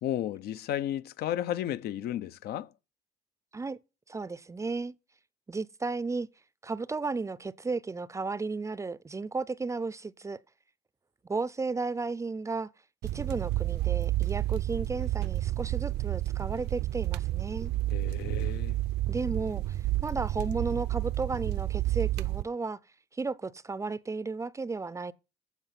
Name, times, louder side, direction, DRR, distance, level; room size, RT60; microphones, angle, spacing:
voice 1, 0.0-2.7 17.9-18.8, left 12 dB, 70° left, 0.7 m, -33 dB
voice 2, 4.1-4.9 5.5-6.3 6.6-10.4 11.3-12.7 13.1-17.7 19.1-22.8 23.2-25.1, right 4 dB, 15° right, 0.5 m, -34 dB
sound 1, 13.0-22.4, right 16 dB, 75° right, 0.5 m, -30 dB
15.0 x 5.8 x 5.8 m
cardioid pair, 110°, 17 cm